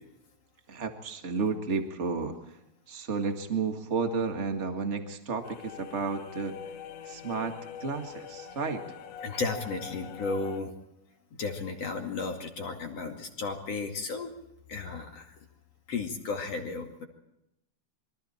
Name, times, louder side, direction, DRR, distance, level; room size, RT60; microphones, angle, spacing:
voice 1, 0.7-2.6 2.9-6.6 7.0-7.5 7.8-8.8, right 4 dB, 60° right, 5 dB, 0.7 m, -32 dB
sound 1, 5.4-10.6, left 8 dB, 85° left, 3.6 m, -44 dB
voice 2, 9.2-10.7 11.4-14.3 14.7-15.4 15.9-17.0, left 4 dB, 45° left, 4 dB, 2.8 m, -34 dB
27.5 x 23.5 x 4.4 m, 0.85 s
omnidirectional pair, 4.9 m